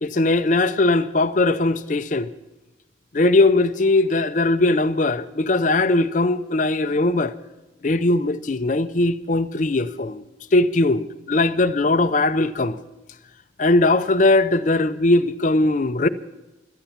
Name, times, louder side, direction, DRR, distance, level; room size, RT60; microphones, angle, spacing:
voice 1, 0.0-2.3 3.1-7.3 7.8-10.2 10.5-12.8 13.6-16.1, left 2 dB, 40° left, 0.5 m, -19 dB
18.0 x 12.5 x 5.6 m
head